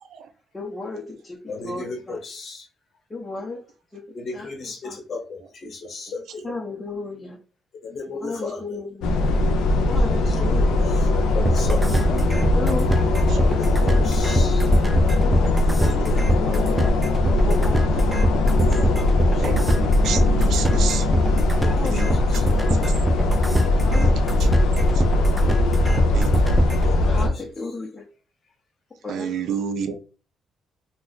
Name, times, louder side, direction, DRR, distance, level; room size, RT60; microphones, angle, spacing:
voice 1, 0.5-2.2 3.1-3.6 3.9-4.0 4.3-5.0 6.4-7.4 8.2-9.1 9.9-10.9 11.9-12.9 13.8-14.3 15.2-15.5 16.0-16.1 17.4-17.8 18.8-18.9 19.3-19.5 21.7-22.2 23.9-24.5 27.0-28.0 29.0-29.3, left 3 dB, 20° left, -2 dB, 0.8 m, -34 dB
voice 2, 1.5-2.7 4.1-6.4 7.8-8.6 10.3-10.4 11.0-11.8 13.3-14.7 15.8-16.9 21.6-22.0 22.3-22.4 25.5-25.6 26.8-27.0 27.3-27.4 29.9-30.0, left 3 dB, 55° left, 3 dB, 1.0 m, -35 dB
sound 1, 9.0-27.3, left 2 dB, 85° left, 0.5 m, -20 dB
sound 2, 11.4-26.9, equal, 10° right, 0.5 m, -24 dB
voice 3, 20.0-21.0 21.9-22.0 23.9-24.1 26.1-26.3 29.1-29.9, right 7 dB, 75° right, 8 dB, 0.5 m, -28 dB
2.5 x 2.3 x 3.9 m, 0.37 s
cardioid pair, 90°, 0 cm